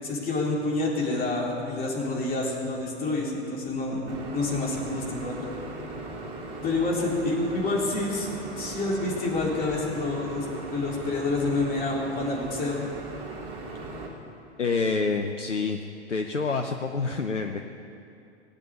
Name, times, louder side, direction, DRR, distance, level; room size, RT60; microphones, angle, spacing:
voice 1, 0.0-5.4 6.6-8.3 8.6-12.9, left 2 dB, 25° left, -3 dB, 3.6 m, -28 dB
sound 1, 4.1-14.1, right 2 dB, 40° right, 2.8 m, -38 dB
voice 2, 14.6-15.8 16.1-17.6, left 4 dB, 85° left, 5 dB, 0.8 m, -27 dB
19.0 x 8.4 x 8.7 m, 2.6 s
figure-of-eight pair, 95°, 35 cm